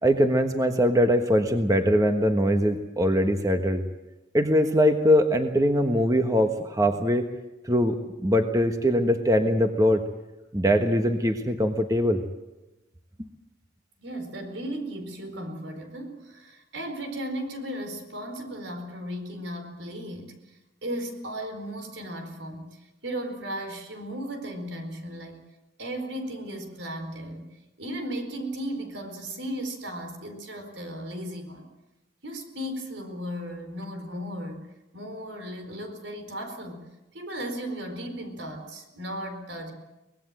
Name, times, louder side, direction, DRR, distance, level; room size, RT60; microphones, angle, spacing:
voice 1, 0.0-3.8 4.3-7.3 7.6-8.0 8.2-10.0 10.5-12.2, equal, 20° right, 6 dB, 1.3 m, -22 dB
voice 2, 14.0-25.4 25.8-27.5 27.8-31.7 32.2-34.7 34.9-36.8 37.1-39.7, equal, 80° right, 6 dB, 4.6 m, -36 dB
24.0 x 19.5 x 7.7 m, 0.99 s
head